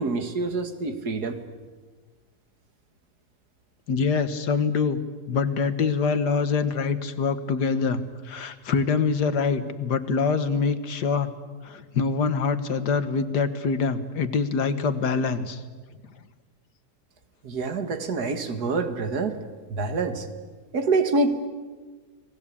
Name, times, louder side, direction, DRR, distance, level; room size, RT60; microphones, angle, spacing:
voice 1, 0.0-1.4 17.4-19.4 19.7-20.3 20.7-21.4, right 3 dB, 70° right, 8 dB, 2.3 m, -26 dB
voice 2, 3.9-5.0 5.3-11.3 11.6-15.6, left 5 dB, 85° left, 11 dB, 2.0 m, -25 dB
29.5 x 20.0 x 8.6 m, 1.4 s
omnidirectional pair, 1.7 m